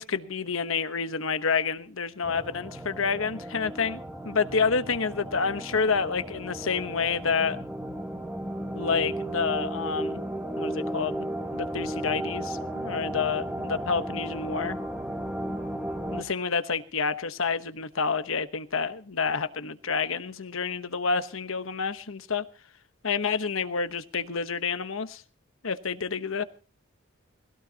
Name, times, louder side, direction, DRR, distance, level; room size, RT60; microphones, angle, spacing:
voice 1, 0.0-7.6 8.7-10.2 10.6-11.3 11.5-14.8 16.1-22.4 23.0-25.2 25.6-26.4, left 5 dB, 70° left, 11 dB, 1.1 m, -29 dB
sound 1, 2.2-16.2, right 1 dB, 5° right, 1.5 m, -34 dB
20.0 x 17.0 x 2.9 m, 0.37 s
head